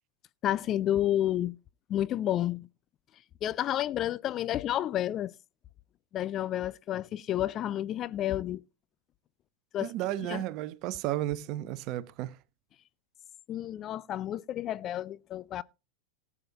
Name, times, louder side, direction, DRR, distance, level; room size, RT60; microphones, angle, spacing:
voice 1, 0.4-1.6 1.9-2.7 3.4-5.3 6.1-8.6 9.7-9.9 10.3-10.4 13.5-15.6, left 12 dB, 30° left, 0.5 m, -30 dB
voice 2, 9.8-12.3, right 14 dB, 40° right, 0.9 m, -33 dB
18.0 x 8.6 x 2.9 m
figure-of-eight pair, 90°, 0 cm